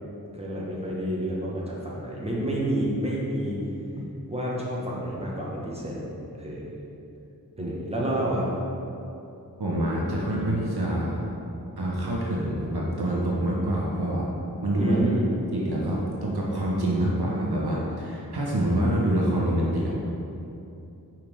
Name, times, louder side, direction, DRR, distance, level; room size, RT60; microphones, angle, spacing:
voice 1, 0.3-3.6 4.3-6.0 6.4-6.7 7.6-8.5 14.8-15.2, right 1 dB, 15° right, -5 dB, 1.2 m, -29 dB
voice 2, 9.6-11.2 11.8-14.3 14.6-15.0 15.5-19.9, right 1 dB, 75° right, -4 dB, 0.9 m, -26 dB
5.7 x 5.1 x 3.4 m, 2.8 s
wide cardioid pair, 50°, 39 cm